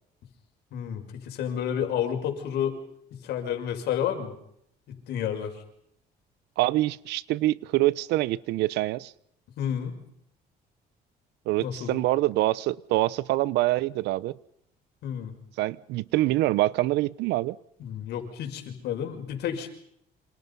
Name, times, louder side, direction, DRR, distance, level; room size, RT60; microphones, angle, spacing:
voice 1, 0.7-2.8 3.1-4.3 4.9-5.5 9.6-9.9 11.6-12.0 15.0-15.3 17.8-19.7, left 9 dB, 75° left, 4 dB, 6.0 m, -30 dB
voice 2, 6.6-9.1 11.5-14.4 15.6-17.6, right 17 dB, 85° right, 20 dB, 0.9 m, -25 dB
29.0 x 27.0 x 5.6 m, 0.72 s
cardioid pair, 110°, 17 cm